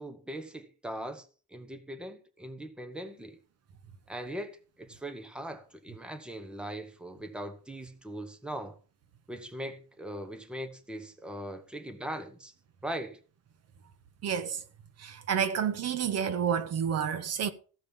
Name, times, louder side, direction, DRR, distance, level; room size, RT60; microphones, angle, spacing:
voice 1, 0.0-3.4 4.1-8.8 9.3-12.5 12.8-13.2, right 1 dB, 5° right, 1.2 m, -40 dB
voice 2, 14.2-14.6 15.0-17.5, right 8 dB, 50° right, 1.2 m, -29 dB
15.5 x 5.2 x 7.2 m
cardioid pair, 155°, 31 cm